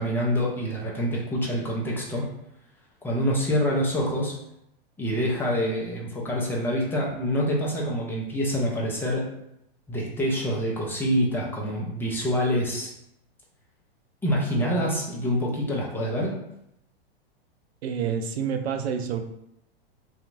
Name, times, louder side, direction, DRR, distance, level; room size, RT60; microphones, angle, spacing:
voice 1, 0.0-2.3 3.0-4.4 5.0-9.3 9.9-12.9 14.2-16.4, equal, 5° left, -3 dB, 0.6 m, -26 dB
voice 2, 17.8-19.2, right 7 dB, 85° right, 5 dB, 0.5 m, -28 dB
2.7 x 2.4 x 2.6 m, 0.79 s
hypercardioid pair, 125°, 31 cm